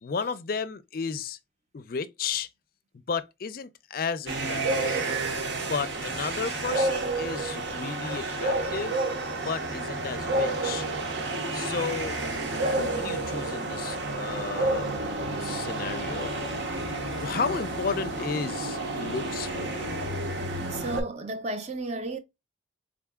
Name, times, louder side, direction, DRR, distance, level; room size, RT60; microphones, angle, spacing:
voice 1, 0.0-1.4 1.7-2.5 3.1-5.2 5.7-9.0 9.4-10.9 11.5-12.2 12.5-14.9 15.4-19.9, left 5 dB, 50° left, 0.4 m, -33 dB
sound 1, 4.3-21.0, right 2 dB, 65° right, 0.9 m, -30 dB
voice 2, 20.7-22.2, right 2 dB, 35° right, 0.6 m, -33 dB
4.5 x 3.8 x 2.3 m
head